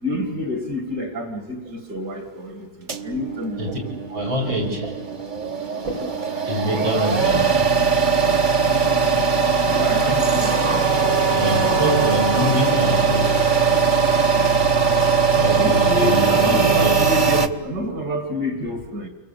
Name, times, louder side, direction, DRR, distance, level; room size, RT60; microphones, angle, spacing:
voice 1, 0.0-2.7 3.0-3.8 9.7-11.0 15.6-19.1, left 1 dB, 55° right, 8 dB, 3.3 m, -28 dB
sound 1, 2.9-17.5, right 5 dB, 30° right, 0.9 m, -20 dB
voice 2, 4.1-5.0 5.6-6.2 6.5-7.7 11.3-13.4 15.3-17.0, equal, 85° right, 0 dB, 6.6 m, -25 dB
29.5 x 23.0 x 8.5 m, 1.1 s
omnidirectional pair, 2.1 m